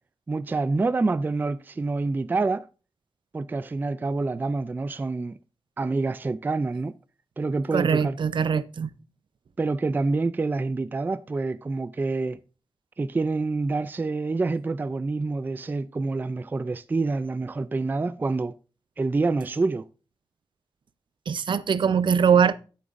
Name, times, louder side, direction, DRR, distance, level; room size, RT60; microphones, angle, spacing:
voice 1, 0.3-2.6 3.3-5.4 5.8-6.9 7.4-8.2 9.6-12.4 13.0-18.5 19.0-19.9, right 3 dB, 20° right, 0.3 m, -27 dB
voice 2, 7.7-8.9 21.3-22.5, right 7 dB, 65° right, 0.6 m, -22 dB
11.0 x 8.5 x 2.5 m
wide cardioid pair, 180°, 9 cm